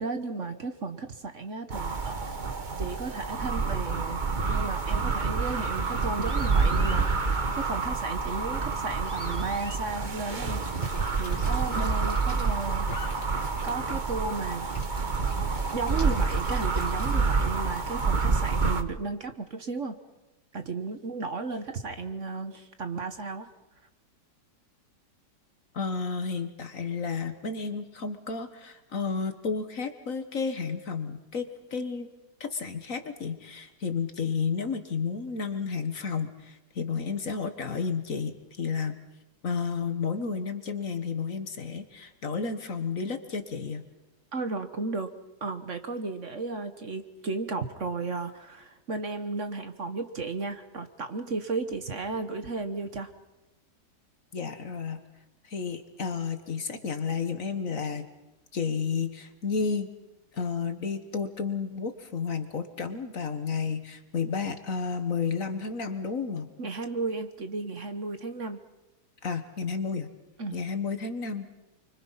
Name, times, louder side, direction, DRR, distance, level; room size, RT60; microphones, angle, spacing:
voice 1, 0.0-2.3 2.8-4.2 4.5-10.6 11.1-12.9 13.6-14.6 15.7-20.0 20.5-23.5 44.3-45.1 45.4-53.1 66.6-68.6 70.4-70.6, right 3 dB, 45° right, 8 dB, 1.5 m, -34 dB
sound 1, 1.7-18.8, right 4 dB, 30° right, 1.2 m, -28 dB
sound 2, 4.4-10.0, left 1 dB, 10° left, 2.1 m, -51 dB
Squeak / Sink (filling or washing) / Trickle dribble, 10.2-18.1, left 3 dB, 75° left, 3.1 m, -46 dB
voice 2, 25.7-32.1 32.4-39.0 39.4-43.8 54.3-55.0 55.4-58.1 58.5-59.9 60.3-66.5 69.2-70.1 70.5-71.5, left 5 dB, 50° left, 8 dB, 1.8 m, -32 dB
29.5 x 24.0 x 5.8 m, 1.0 s
omnidirectional pair, 1.9 m